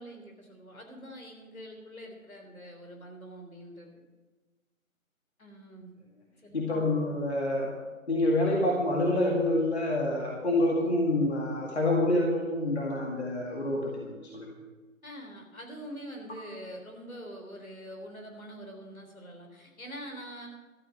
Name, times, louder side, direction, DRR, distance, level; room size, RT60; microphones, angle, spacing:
voice 1, 0.0-3.9 5.4-5.9 6.4-6.7 15.0-20.5, equal, 75° left, 2 dB, 3.7 m, -44 dB
voice 2, 6.5-7.7 8.1-14.5, left 1 dB, 50° left, -1 dB, 2.1 m, -27 dB
13.0 x 8.2 x 7.3 m, 1.2 s
figure-of-eight pair, 165°, 42 cm